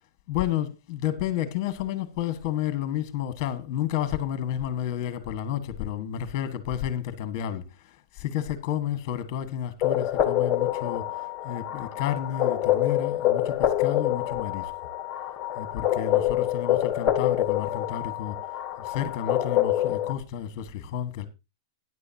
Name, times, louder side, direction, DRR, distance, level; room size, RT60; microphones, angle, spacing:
voice 1, 0.3-11.1 11.4-14.7 15.6-18.4 18.8-21.3, left 10 dB, 35° left, 1.5 m, -31 dB
sound 1, 9.8-20.1, left 12 dB, 20° left, 1.4 m, -26 dB
14.5 x 10.0 x 2.8 m
supercardioid pair, 165°, 3 cm